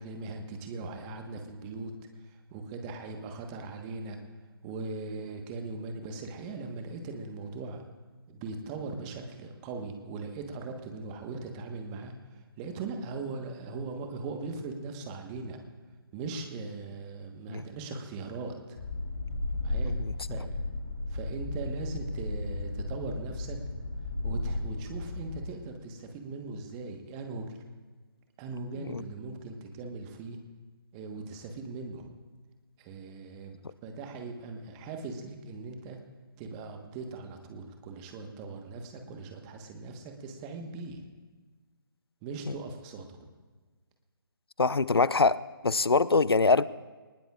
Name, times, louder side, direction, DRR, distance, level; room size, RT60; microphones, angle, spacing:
voice 1, 0.0-1.9 2.2-4.2 4.6-7.8 8.3-15.6 16.1-18.8 19.6-19.9 20.3-20.7 21.1-23.6 24.2-27.6 28.4-30.4 30.9-32.1 32.8-36.0 36.4-41.0 42.2-43.3, right 3 dB, 15° right, 1.3 m, -40 dB
sound 1, 18.8-25.4, left 2 dB, 45° left, 3.2 m, -34 dB
voice 2, 44.6-46.6, left 4 dB, 80° left, 0.5 m, -24 dB
21.0 x 19.5 x 2.5 m
figure-of-eight pair, 145°, 13 cm